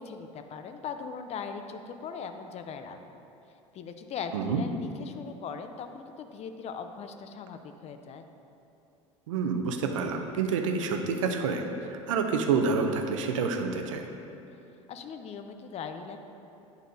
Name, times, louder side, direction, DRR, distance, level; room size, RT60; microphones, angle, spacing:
voice 1, 0.0-3.0 3.7-8.3 14.9-16.2, left 6 dB, 40° left, 7 dB, 0.5 m, -39 dB
voice 2, 4.3-4.6 9.3-14.1, right 5 dB, 80° right, 5 dB, 0.6 m, -28 dB
11.5 x 4.0 x 2.7 m, 2.8 s
hypercardioid pair, 75°, 16 cm